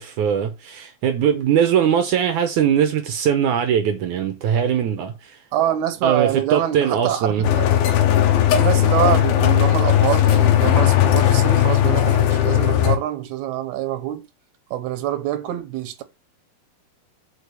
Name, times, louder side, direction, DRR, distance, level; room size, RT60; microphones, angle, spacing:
voice 1, 0.0-5.4 6.0-7.5, right 8 dB, 70° right, 2.0 m, -21 dB
voice 2, 5.5-7.7 8.6-14.3 14.7-16.0, right 12 dB, 90° right, 3.0 m, -25 dB
sound 1, 7.4-13.0, left 11 dB, 80° left, 2.9 m, -17 dB
6.5 x 4.9 x 6.8 m
omnidirectional pair, 4.4 m